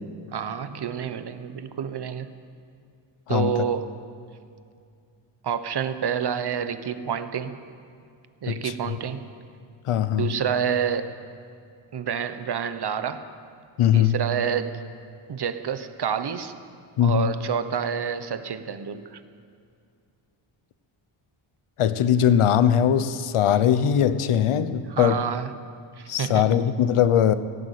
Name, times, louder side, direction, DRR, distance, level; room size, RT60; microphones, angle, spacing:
voice 1, 0.3-2.3 3.3-3.9 5.4-7.6 8.4-9.3 10.2-11.1 11.9-13.3 13.9-14.8 15.3-16.5 17.0-19.2 24.9-25.5 26.0-26.6, right 7 dB, 50° right, 11 dB, 1.2 m, -28 dB
voice 2, 8.5-9.0 9.9-10.3 13.8-14.2 17.0-17.3 21.8-25.2 26.1-27.3, left 9 dB, 85° left, 13 dB, 1.0 m, -21 dB
17.5 x 17.5 x 8.4 m, 2.3 s
wide cardioid pair, 135°, 50 cm